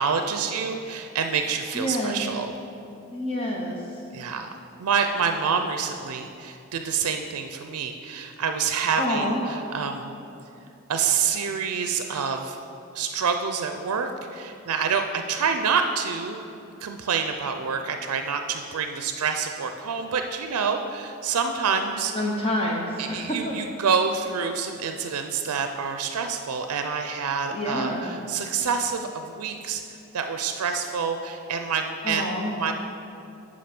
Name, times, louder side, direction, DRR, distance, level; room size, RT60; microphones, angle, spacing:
voice 1, 0.0-2.5 4.1-4.5 4.8-10.1 10.9-12.6 12.9-16.4 16.8-22.1 23.0-29.8 30.1-32.3 32.5-32.7, right 6 dB, 85° right, 6 dB, 0.5 m, -27 dB
voice 2, 1.7-2.2 3.1-3.8 9.0-9.4 22.1-23.5 27.5-28.1 32.0-32.6, left 1 dB, 25° left, -2 dB, 0.8 m, -27 dB
8.4 x 5.2 x 5.9 m, 2.7 s
head